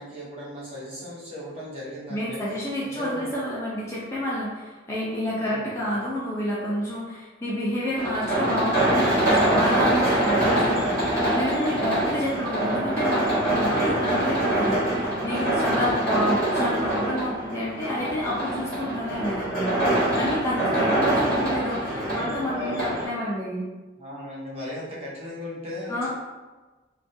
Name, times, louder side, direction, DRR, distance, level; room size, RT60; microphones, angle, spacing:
voice 1, 0.0-2.4 2.8-3.3 5.4-5.9 13.3-14.0 15.6-16.0 20.5-21.3 21.9-23.0 24.0-26.1, left 1 dB, 35° right, -7 dB, 0.8 m, -37 dB
voice 2, 2.1-23.7 25.9-26.1, left 1 dB, 15° left, -7 dB, 0.4 m, -29 dB
sound 1, 8.0-23.0, right 1 dB, 50° right, 1.3 m, -24 dB
2.4 x 2.2 x 2.6 m, 1.2 s
head